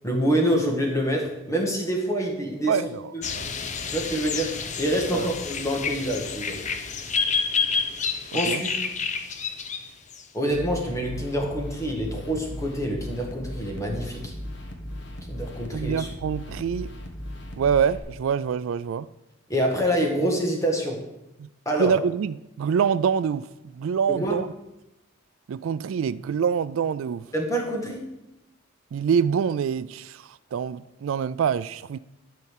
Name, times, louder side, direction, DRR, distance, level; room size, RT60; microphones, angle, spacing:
voice 1, 0.0-2.8 3.1-3.2 3.9-6.6 8.3-8.8 10.3-14.3 15.3-16.1 19.5-21.0 21.6-21.9 24.1-24.4 27.3-28.1, equal, 15° left, 1.6 m, -26 dB
voice 2, 2.7-3.0 3.3-3.5 5.1-5.3 8.3-8.6 15.7-16.9 17.6-19.1 21.4-21.5 21.8-23.5 23.7-24.5 25.5-27.3 28.9-32.0, right 7 dB, 75° right, 0.3 m, -25 dB
sound 1, 3.2-10.2, left 5 dB, 35° left, 0.6 m, -29 dB
sound 2, 10.5-18.0, left 1 dB, 55° left, 1.4 m, -37 dB
11.5 x 4.3 x 7.3 m
head